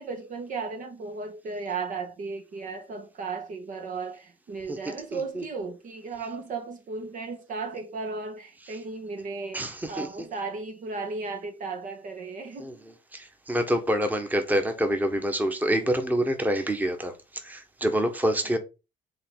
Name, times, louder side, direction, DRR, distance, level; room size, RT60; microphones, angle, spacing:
voice 1, 0.0-12.7 18.4-18.6, right 4 dB, 50° right, 1.4 m, -35 dB
voice 2, 4.7-5.4 9.5-10.1 12.6-12.8 13.1-18.6, equal, 10° right, 1.4 m, -27 dB
5.6 x 4.0 x 5.5 m
cardioid pair, 110°, 17 cm